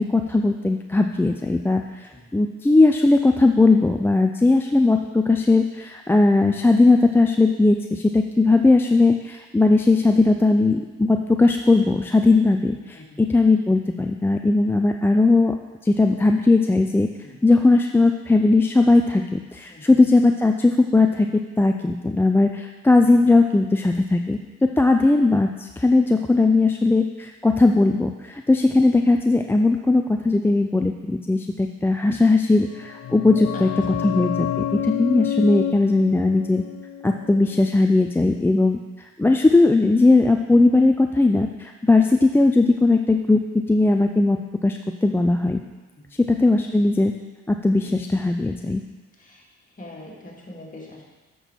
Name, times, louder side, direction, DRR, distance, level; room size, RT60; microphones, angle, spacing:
voice 1, 0.0-15.6 15.8-17.1 17.4-33.7 34.0-36.6 37.0-38.8 39.2-45.6 46.2-47.1 47.5-48.8, left 2 dB, 10° left, 3 dB, 0.3 m, -18 dB
sound 1, 32.6-38.1 38.3-38.4, left 10 dB, 60° left, 0.5 m, -29 dB
voice 2, 49.8-51.0, left 1 dB, 25° left, -3 dB, 2.1 m, -42 dB
8.1 x 6.1 x 4.4 m, 1.2 s
cardioid pair, 90°, 30 cm